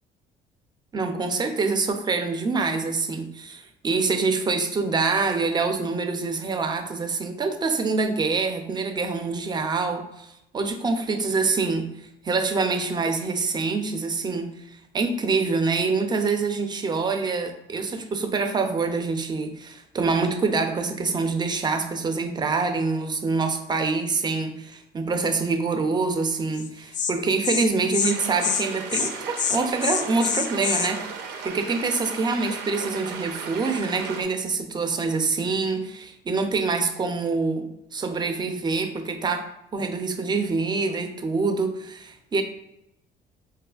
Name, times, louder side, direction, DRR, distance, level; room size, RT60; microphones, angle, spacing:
voice 1, 0.9-11.9 12.2-31.0 31.4-42.4, right 4 dB, 25° right, 6 dB, 0.4 m, -25 dB
Insect, 26.6-26.7 26.9-27.1 27.4-27.6 27.9-28.1 28.4-28.6 28.9-29.1 29.4-30.9, left 7 dB, 50° left, 0.4 m, -25 dB
sound 1, 28.0-34.2, right 6 dB, 80° right, 0.5 m, -36 dB
4.1 x 2.4 x 2.3 m, 0.85 s
cardioid pair, 110°, 17 cm